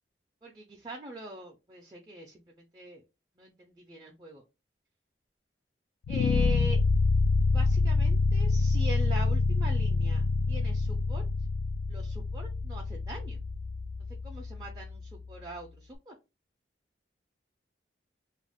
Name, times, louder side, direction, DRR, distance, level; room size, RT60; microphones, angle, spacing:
voice 1, 0.4-3.0 3.4-4.4 6.1-6.8 7.5-11.2 11.9-13.4 14.2-15.7 16.1-16.2, right 1 dB, 20° right, -1 dB, 0.4 m, -42 dB
sound 1, 6.0-15.2, left 3 dB, 85° left, 0.3 m, -27 dB
2.4 x 2.0 x 3.4 m, 0.26 s
head